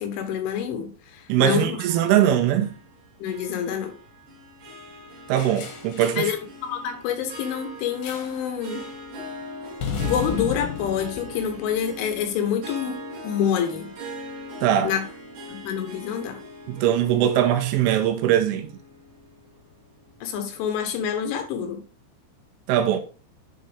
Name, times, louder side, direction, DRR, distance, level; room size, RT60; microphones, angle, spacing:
voice 1, 0.0-1.8 2.2-2.3 3.2-3.9 6.2-8.8 10.0-13.9 14.8-15.1 15.5-16.4 20.2-21.8, left 8 dB, 75° left, 3.4 m, -27 dB
voice 2, 1.3-2.7 5.3-6.3 14.6-14.9 16.7-18.7 22.7-23.0, right 10 dB, 85° right, 3.4 m, -21 dB
Harp, 1.8-20.3, equal, 50° right, 3.1 m, -41 dB
sound 1, 5.3-6.4 8.0-8.4 8.7-9.0 9.8-12.1, left 6 dB, 60° left, 2.5 m, -33 dB
11.0 x 3.9 x 3.4 m
omnidirectional pair, 5.7 m